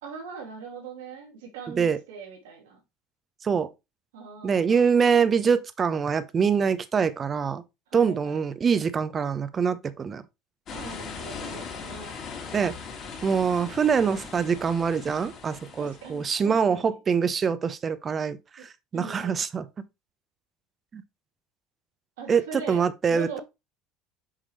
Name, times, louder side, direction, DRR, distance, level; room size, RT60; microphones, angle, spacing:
voice 1, 0.0-2.8 4.1-5.1 7.9-8.4 10.7-12.2 15.8-17.0 18.9-19.4 22.2-22.8 23.1-23.4, right 5 dB, 75° right, 2.6 m, -41 dB
voice 2, 4.4-7.6 7.9-10.2 12.5-12.7 13.2-19.6 20.9-21.0 22.3-23.4, right 6 dB, 35° right, 0.8 m, -24 dB
sound 1, 10.7-16.6, left 5 dB, 45° left, 3.0 m, -40 dB
7.5 x 5.0 x 3.2 m
hypercardioid pair, 75°, 0 cm